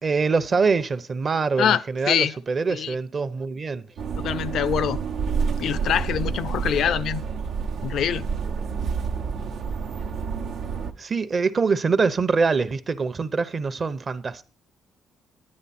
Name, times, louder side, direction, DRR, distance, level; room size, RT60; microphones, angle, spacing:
voice 1, 0.0-3.9 11.0-14.4, right 4 dB, 40° right, 0.8 m, -24 dB
voice 2, 1.6-2.4 2.7-3.0 4.2-5.0 5.6-7.2 7.8-8.3, left 9 dB, 70° left, 0.5 m, -24 dB
sound 1, 4.0-10.9, right 5 dB, 85° right, 1.1 m, -28 dB
10.0 x 9.7 x 4.3 m
cardioid pair, 90°, 0 cm